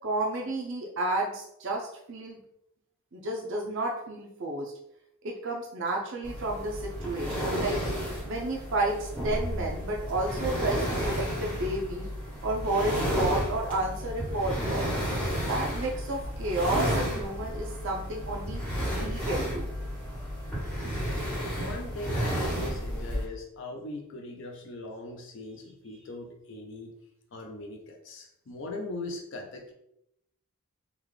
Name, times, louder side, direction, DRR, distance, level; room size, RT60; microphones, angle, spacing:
voice 1, 0.0-2.4 3.1-4.7 5.2-7.8 8.2-12.1 12.4-14.9 15.5-18.6 19.0-19.7, right 2 dB, 55° right, -2 dB, 0.5 m, -31 dB
sound 1, 6.2-23.2, equal, 5° left, 1.2 m, -32 dB
voice 2, 21.4-26.9 27.3-29.7, left 2 dB, 55° left, 2 dB, 0.5 m, -40 dB
3.7 x 2.3 x 3.2 m, 0.78 s
head